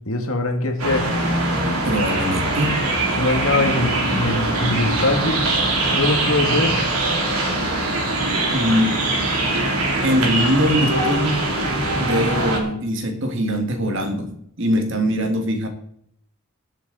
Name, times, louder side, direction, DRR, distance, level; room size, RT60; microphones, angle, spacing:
voice 1, 0.1-1.1 3.2-5.4 5.9-6.7, left 2 dB, 70° left, 4 dB, 2.1 m, -22 dB
sound 1, 0.8-12.6, right 2 dB, 90° right, 3.1 m, -22 dB
voice 2, 1.8-2.8 8.5-9.0 10.0-11.4 11.7-15.7, equal, 55° right, 5 dB, 1.9 m, -22 dB
20.0 x 7.4 x 4.0 m, 0.70 s
head